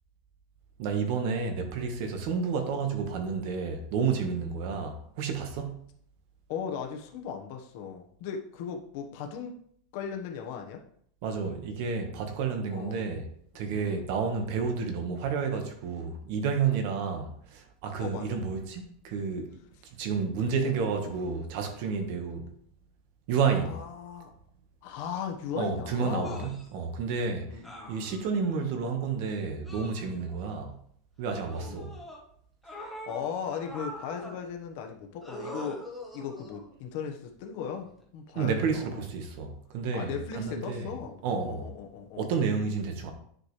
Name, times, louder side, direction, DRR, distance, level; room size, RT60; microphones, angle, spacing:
voice 1, 0.8-5.8 11.2-13.3 13.5-19.5 20.0-22.5 23.3-23.8 25.6-27.6 27.9-30.7 31.2-31.9 38.3-40.9 41.2-41.7 42.2-43.1, right 5 dB, 50° right, 1.5 m, -30 dB
voice 2, 6.5-9.6 9.9-10.8 12.7-13.0 13.7-14.1 16.6-16.8 18.0-18.4 23.6-24.3 24.8-26.5 27.5-28.2 31.6-31.9 32.6-35.8 36.1-39.0 39.9-41.2 41.4-42.3, left 7 dB, 50° left, 1.3 m, -37 dB
sound 1, 26.2-26.7 27.6-28.6 29.6-30.5 31.3-32.2 32.6-34.4 35.2-36.7 37.8-38.0, equal, ahead, 1.2 m, -44 dB
10.0 x 5.2 x 3.3 m
supercardioid pair, 175°, 0 cm